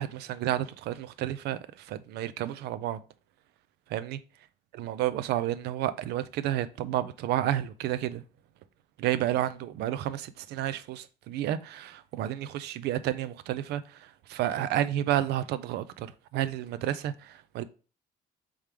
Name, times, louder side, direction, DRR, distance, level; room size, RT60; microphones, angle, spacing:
voice 1, 0.0-3.0 3.9-4.2 4.7-8.2 9.0-17.6, right 12 dB, 75° right, 0.4 m, -31 dB
3.6 x 3.4 x 4.4 m
cardioid pair, 110°, 17 cm